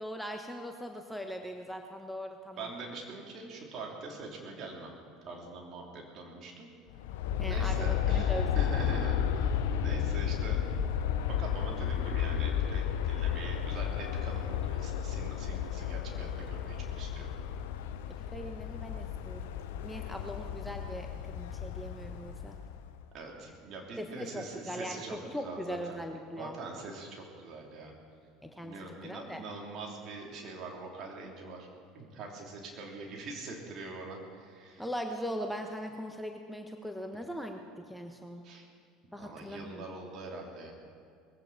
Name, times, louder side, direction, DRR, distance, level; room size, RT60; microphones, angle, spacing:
voice 1, 0.0-2.7 7.4-9.0 18.1-22.6 24.0-26.6 28.4-29.4 34.8-38.5 39.1-39.9, equal, ahead, 4 dB, 1.2 m, -40 dB
voice 2, 2.6-4.9 5.3-6.7 7.4-10.6 11.4-17.3 23.1-26.0 26.4-27.9 28.6-31.7 31.9-34.8 38.4-38.6 39.1-40.7, right 3 dB, 45° right, 0 dB, 3.6 m, -43 dB
Aircraft, 6.9-23.0, left 8 dB, 65° left, 0.7 m, -32 dB
20.5 x 16.0 x 4.4 m, 2.3 s
figure-of-eight pair, 70°, 0 cm